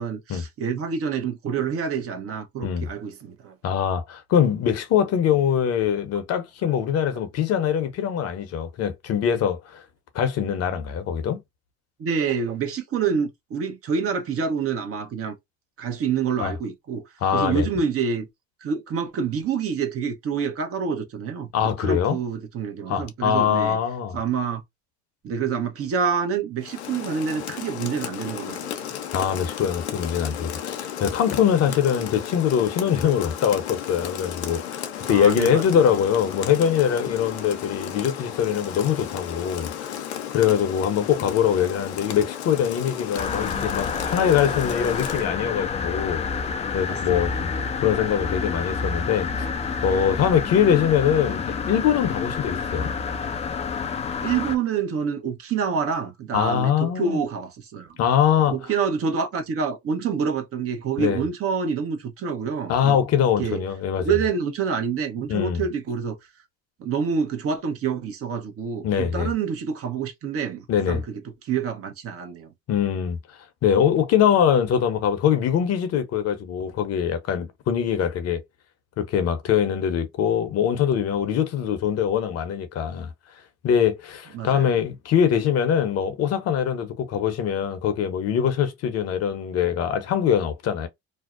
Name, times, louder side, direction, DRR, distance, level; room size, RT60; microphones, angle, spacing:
voice 1, 0.0-3.5 6.6-6.7 7.6-7.7 12.0-15.4 15.8-17.0 17.3-18.3 18.6-21.5 21.8-23.8 24.1-24.6 25.2-28.8 35.1-35.6 46.9-47.2 54.2-57.9 58.5-63.0 63.4-63.6 64.0-66.2 66.8-71.0 71.4-72.5 84.3-84.7, right 6 dB, 45° right, 0.8 m, -27 dB
voice 2, 3.6-9.8 10.1-11.4 16.4-16.5 17.2-17.7 21.5-22.2 22.9-24.2 29.1-46.2 46.7-47.5 47.8-49.5 49.8-52.9 56.3-57.2 58.0-58.6 61.0-61.2 62.7-64.2 65.3-65.6 68.8-69.3 70.7-71.0 72.7-78.4 79.0-83.1 83.6-90.9, left 8 dB, 50° left, 0.7 m, -23 dB
Rain, 26.6-45.3, left 10 dB, 90° left, 0.6 m, -34 dB
sound 1, 43.2-54.6, left 5 dB, 20° left, 0.3 m, -29 dB
2.6 x 2.0 x 2.4 m
hypercardioid pair, 75°, 32 cm